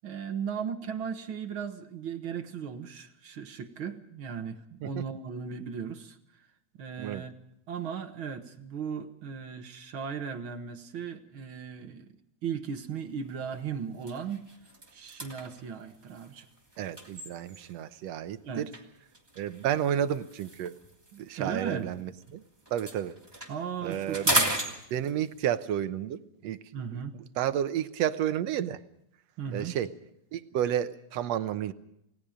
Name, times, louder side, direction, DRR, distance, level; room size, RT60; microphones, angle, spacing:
voice 1, 0.0-6.5 6.7-7.3 7.7-12.2 12.4-14.5 14.9-16.5 18.4-18.7 21.1-21.9 23.5-24.5 26.7-27.1 29.4-29.8, right 7 dB, 50° right, 8 dB, 1.8 m, -37 dB
sound 1, 12.8-13.0 13.4-13.6 13.9-17.9 18.7-22.3 22.6-25.4, right 1 dB, 10° right, 2.5 m, -35 dB
voice 2, 16.8-18.7 19.4-20.7 21.2-22.4 22.7-23.2 23.8-24.5 24.9-26.6 26.9-28.8 29.5-29.9 30.3-31.7, right 10 dB, 70° right, 12 dB, 2.0 m, -31 dB
29.0 x 18.5 x 5.1 m, 0.78 s
omnidirectional pair, 3.3 m